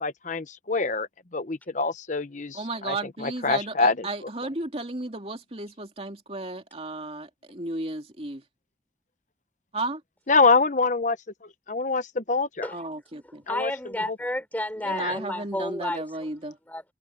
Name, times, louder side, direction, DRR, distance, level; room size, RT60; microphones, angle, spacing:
voice 1, 0.0-4.1 10.3-11.2 11.4-12.7 13.5-13.7 14.1-14.2 14.9-15.2, left 3 dB, 45° left, 1.1 m, -25 dB
voice 2, 2.5-8.4 9.7-10.0 12.7-13.4 14.9-16.6, right 2 dB, 35° right, 2.8 m, -34 dB
voice 3, 13.5-16.0 16.7-16.8, left 1 dB, 10° left, 5.0 m, -31 dB
head